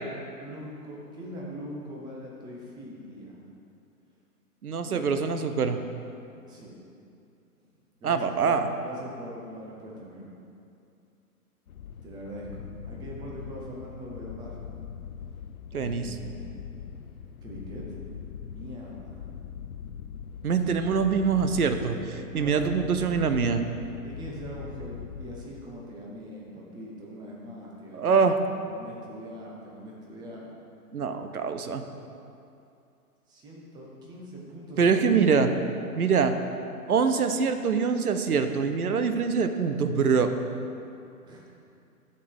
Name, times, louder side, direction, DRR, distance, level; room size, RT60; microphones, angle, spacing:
voice 1, 0.3-3.4 4.8-5.1 6.4-6.7 8.0-10.3 12.0-14.6 15.7-16.8 17.4-18.0 18.5-19.3 22.2-22.8 24.0-28.3 28.6-30.5 33.3-35.3 41.2-41.4, equal, 10° right, -3 dB, 0.7 m, -42 dB
voice 2, 4.6-5.8 8.0-8.7 15.7-16.2 20.4-23.6 27.9-28.4 30.9-31.8 34.8-35.5 36.0-36.3 36.9-40.3, right 5 dB, 70° right, 8 dB, 0.8 m, -24 dB
sound 1, 11.7-25.9, left 7 dB, 65° left, 0.6 m, -42 dB
10.5 x 6.7 x 3.7 m, 2.6 s
figure-of-eight pair, 125°, 46 cm